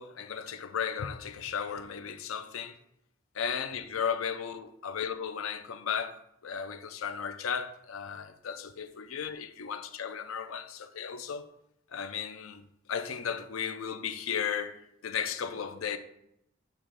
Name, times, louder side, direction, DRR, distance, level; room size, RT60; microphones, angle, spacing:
voice 1, 0.0-2.8 3.3-11.5 11.9-12.6 12.9-16.0, left 7 dB, 85° left, 0.5 m, -35 dB
7.6 x 3.0 x 5.0 m
head